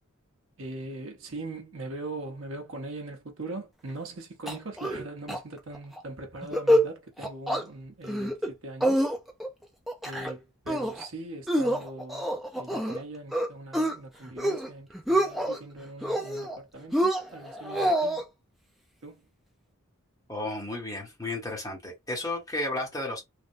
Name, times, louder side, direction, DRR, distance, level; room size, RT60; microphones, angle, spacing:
voice 1, 0.6-9.0 10.0-18.2 19.0-19.3, right 2 dB, 65° right, 0.8 m, -41 dB
sound 1, 4.5-5.0 5.3-5.4 5.7-6.0 6.4-6.9 7.2-7.6 8.0-8.5 8.8-9.5 9.9-10.3 10.7-11.1 11.5-13.0 13.3-13.9 14.3-14.7 14.9-15.6 16.0-16.6 16.9-18.2, equal, ahead, 0.4 m, -26 dB
voice 2, 20.3-23.2, left 2 dB, 15° left, 0.9 m, -33 dB
3.3 x 2.1 x 2.6 m
head